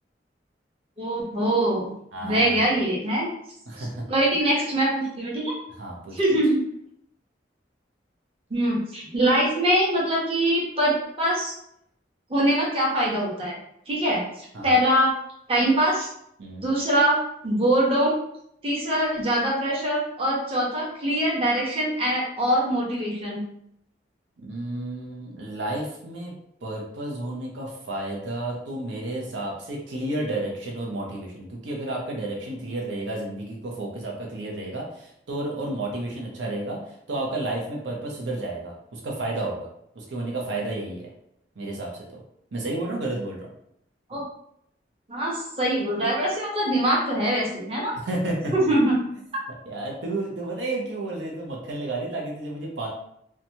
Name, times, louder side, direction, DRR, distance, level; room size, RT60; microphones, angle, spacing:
voice 1, 1.0-1.9 2.2-3.3 3.8-5.5 6.1-6.6 8.5-11.5 12.3-13.5 13.9-15.1 15.5-16.1 16.6-17.2 17.4-18.1 18.6-23.4 44.1-44.2 45.1-48.0 48.5-49.0, right 1 dB, 30° right, -5 dB, 0.8 m, -23 dB
voice 2, 2.1-2.6 3.7-4.1 5.8-6.2 14.5-14.8 16.4-16.6 24.4-26.3 26.6-39.7 39.9-41.1 41.6-42.2 42.5-43.5 48.0-48.5 49.7-52.9, right 2 dB, 90° right, -1 dB, 0.6 m, -31 dB
2.9 x 2.2 x 2.7 m, 0.73 s
head